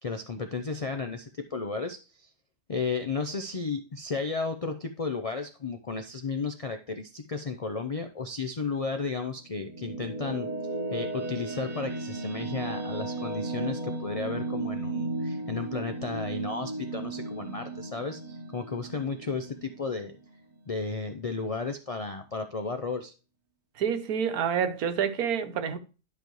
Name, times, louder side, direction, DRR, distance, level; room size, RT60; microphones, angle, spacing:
voice 1, 0.0-2.3 2.7-10.5 10.9-20.2 20.7-23.1, left 4 dB, 70° left, 0.3 m, -33 dB
sound 1, 9.3-20.6, right 3 dB, 40° right, 0.7 m, -35 dB
voice 2, 23.8-25.8, right 7 dB, 80° right, 1.3 m, -28 dB
10.5 x 5.2 x 3.1 m
omnidirectional pair, 1.6 m